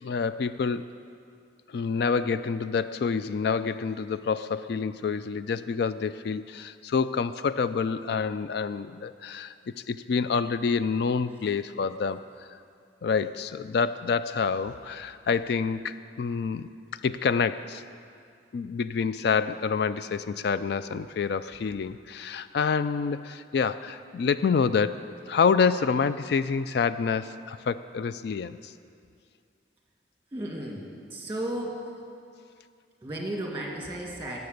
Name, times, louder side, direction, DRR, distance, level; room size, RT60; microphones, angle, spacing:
voice 1, 0.0-0.8 1.7-12.2 13.0-17.8 18.5-28.7, left 5 dB, 65° left, 13 dB, 0.3 m, -27 dB
voice 2, 30.3-31.9 33.0-34.4, right 1 dB, 10° right, -2 dB, 1.9 m, -34 dB
17.5 x 6.8 x 6.6 m, 2.3 s
head